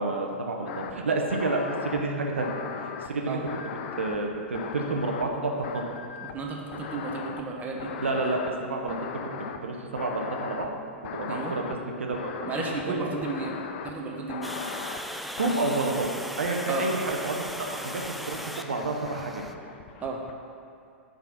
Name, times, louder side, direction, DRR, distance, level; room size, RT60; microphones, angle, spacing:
voice 1, 0.0-2.6 3.0-3.4 3.9-5.8 8.0-9.2 9.6-10.7 11.1-12.3 12.9-13.1 15.4-16.1 16.4-18.0 18.3-18.4 18.6-19.4, right 3 dB, 85° right, 2 dB, 0.7 m, -29 dB
sound 1, 0.7-0.9 1.3-2.0 2.4-3.1 3.5-5.3 5.6-6.5 6.7-7.4 7.8-8.5 8.9-9.6 10.0-10.7 11.0-11.7 12.1-12.8 13.2-13.9 14.3-15.0 15.4-16.1 16.4-17.1 17.5-18.1 18.3-20.3, left 7 dB, 65° left, 0.4 m, -38 dB
voice 2, 6.2-7.9 11.3-11.6 12.5-14.6 16.7-16.9 20.0-20.2, right 3 dB, 25° right, 0 dB, 0.9 m, -33 dB
Water, 14.4-19.5, equal, ahead, 0.3 m, -38 dB
5.7 x 3.9 x 5.8 m, 2.4 s
hypercardioid pair, 105°, 7 cm